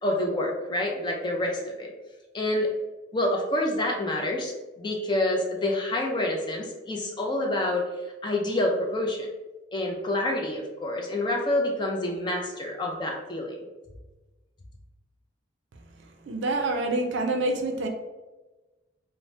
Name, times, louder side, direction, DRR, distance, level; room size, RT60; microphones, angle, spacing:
voice 1, 0.0-1.9 2.3-2.7 3.1-7.9 8.2-9.3 9.7-13.6, left 1 dB, 25° left, 0 dB, 0.3 m, -27 dB
voice 2, 16.3-17.9, right 2 dB, 65° right, 4 dB, 0.4 m, -26 dB
2.7 x 2.0 x 3.1 m, 1.1 s
head